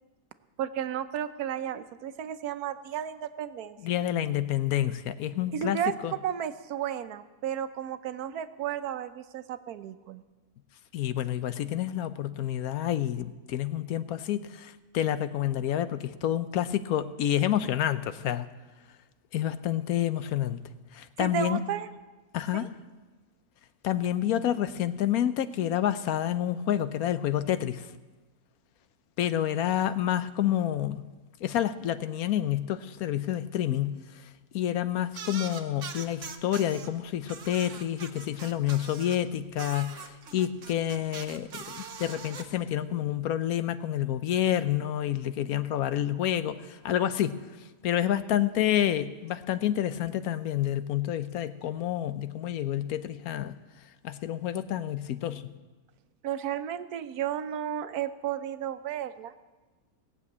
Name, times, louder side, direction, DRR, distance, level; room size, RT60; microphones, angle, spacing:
voice 1, 0.6-3.8 5.5-6.0 6.2-10.2 21.2-21.9 22.5-22.7 56.2-59.3, right 10 dB, 85° right, 11 dB, 1.2 m, -33 dB
voice 2, 3.8-6.1 10.9-18.5 19.3-20.6 20.9-21.6 22.3-22.7 23.8-27.8 29.2-31.1 31.4-34.0 34.5-47.4 47.8-53.5 54.0-55.4, left 11 dB, 75° left, 13 dB, 1.1 m, -28 dB
sound 1, 35.1-36.9 37.3-39.2 39.6-42.4, right 6 dB, 60° right, 1.3 m, -42 dB
18.5 x 7.0 x 8.4 m, 1.2 s
omnidirectional pair, 1.6 m